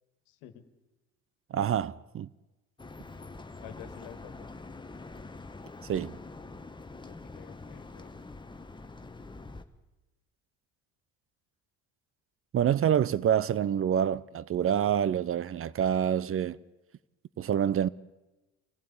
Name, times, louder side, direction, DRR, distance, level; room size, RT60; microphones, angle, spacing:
voice 1, 0.3-0.6 3.6-4.5 7.1-8.3, left 11 dB, 75° left, 1.8 m, -50 dB
voice 2, 1.5-2.3 5.9-6.1 12.5-16.6 17.4-17.9, right 9 dB, 40° right, 0.7 m, -27 dB
sound 1, 2.8-9.6, left 3 dB, 15° left, 1.3 m, -45 dB
26.0 x 15.0 x 8.6 m
hypercardioid pair, 70°, 35 cm